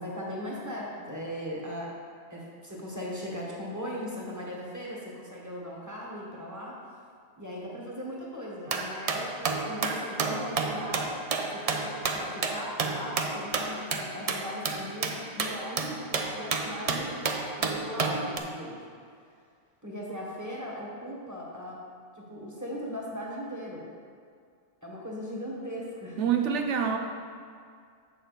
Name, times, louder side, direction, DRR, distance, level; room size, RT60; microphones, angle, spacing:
voice 1, 0.0-1.9 2.3-6.8 7.4-11.1 11.5-17.1 17.6-18.8 19.8-21.8 22.1-23.9 24.8-26.2, equal, 15° right, -4 dB, 1.4 m, -38 dB
sound 1, 8.7-18.4, right 4 dB, 45° right, 0.5 m, -31 dB
voice 2, 26.2-27.0, right 7 dB, 85° right, 5 dB, 1.0 m, -26 dB
7.7 x 6.6 x 4.0 m, 2.2 s
omnidirectional pair, 1.2 m